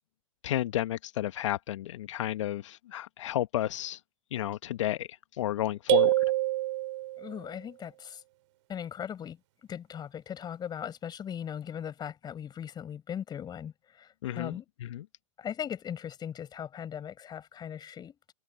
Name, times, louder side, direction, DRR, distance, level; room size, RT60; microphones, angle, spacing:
voice 1, 0.4-4.0 4.3-6.2 14.2-15.0, left 13 dB, 70° left, 1.2 m, -32 dB
sound 1, 5.9-7.4, right 17 dB, 60° right, 2.3 m, -26 dB
voice 2, 7.2-8.2 8.7-9.4 9.7-14.7 15.4-18.1, left 9 dB, 25° left, 6.2 m, -39 dB
open air
hypercardioid pair, 105°, 17 cm